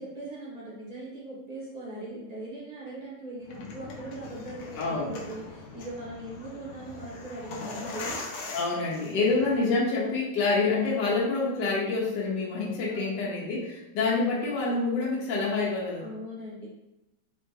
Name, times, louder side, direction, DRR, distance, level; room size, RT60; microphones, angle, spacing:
voice 1, 0.0-8.2 9.2-9.4 10.2-10.4 12.9-13.4 16.0-16.7, right 1 dB, 45° right, -6 dB, 0.5 m, -40 dB
sound 1, 3.4-9.6, left 3 dB, 70° left, 0.9 m, -41 dB
voice 2, 4.8-5.1 8.5-16.1, left 3 dB, 85° left, -4 dB, 1.3 m, -27 dB
3.7 x 2.3 x 2.7 m, 0.94 s
omnidirectional pair, 1.8 m